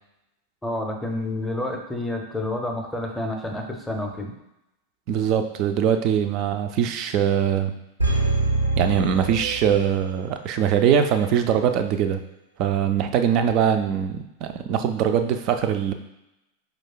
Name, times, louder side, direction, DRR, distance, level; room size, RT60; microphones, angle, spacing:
voice 1, 0.6-4.3, left 1 dB, 5° left, 2 dB, 0.6 m, -29 dB
voice 2, 5.1-7.7 8.8-12.2 12.6-15.9, right 8 dB, 40° right, 8 dB, 0.4 m, -22 dB
sound 1, 8.0-10.2 10.5-10.6, right 3 dB, 85° right, 0.7 m, -24 dB
4.9 x 2.3 x 3.7 m, 0.90 s
figure-of-eight pair, 90°, 0 cm